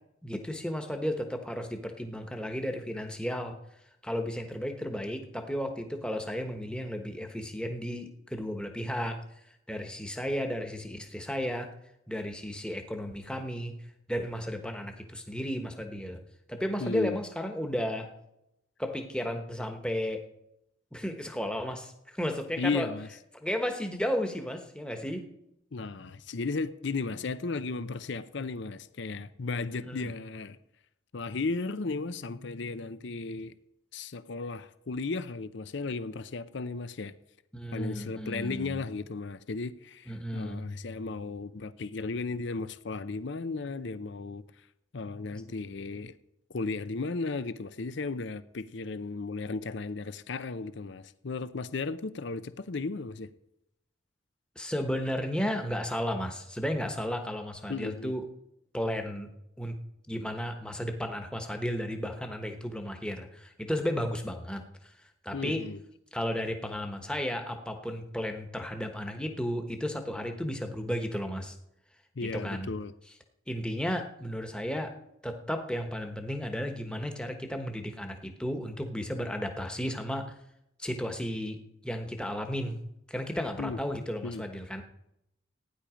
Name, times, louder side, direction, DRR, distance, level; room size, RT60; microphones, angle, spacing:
voice 1, 0.2-3.6 4.0-9.2 9.7-11.7 12.1-13.7 14.1-16.2 16.5-18.1 18.8-20.2 20.9-22.9 23.3-25.3 29.8-30.1 37.5-38.8 40.1-40.7 54.6-58.2 58.7-59.3 59.6-59.8 60.1-64.6 65.2-65.6 66.1-71.6 72.3-72.7 73.5-74.9 75.2-80.2 80.8-81.6 81.8-82.8 83.1-84.8, equal, 5° left, 1.2 m, -33 dB
voice 2, 16.8-17.2 22.6-23.1 25.7-30.6 31.1-33.5 33.9-37.1 37.7-44.4 44.9-46.1 46.5-53.3 57.7-58.1 65.3-65.8 72.2-72.9 83.6-83.8 84.2-84.4, left 3 dB, 60° left, 0.6 m, -35 dB
15.5 x 10.0 x 5.1 m
head